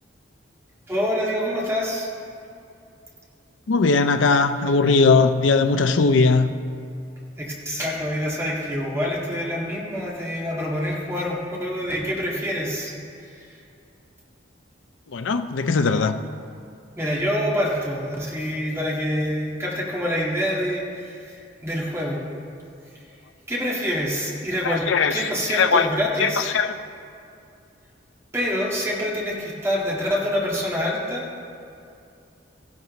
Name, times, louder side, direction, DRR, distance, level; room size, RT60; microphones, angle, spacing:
voice 1, 0.9-2.1 7.4-12.9 13.3-13.5 17.0-22.2 23.5-24.8 25.1-26.5 28.3-31.2, equal, 15° right, -4 dB, 1.8 m, -26 dB
voice 2, 3.7-6.5 15.1-16.1 24.6-25.9 26.2-26.7, left 4 dB, 80° left, 9 dB, 0.5 m, -19 dB
15.0 x 11.0 x 3.1 m, 2.5 s
head